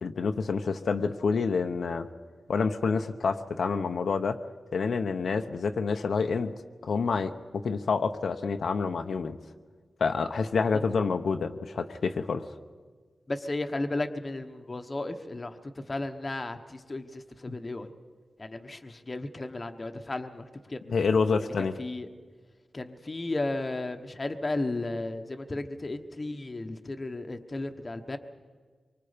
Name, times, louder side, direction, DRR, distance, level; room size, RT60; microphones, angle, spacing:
voice 1, 0.0-2.1 2.5-4.4 4.7-6.5 6.8-9.4 10.0-12.5 20.9-21.8, left 5 dB, 70° left, 6 dB, 0.9 m, -28 dB
voice 2, 13.3-15.6 15.9-17.9 18.4-20.8 21.6-22.1 22.7-28.2, left 2 dB, 25° left, 6 dB, 1.1 m, -34 dB
25.0 x 24.0 x 5.1 m, 1.5 s
wide cardioid pair, 160°, 0 cm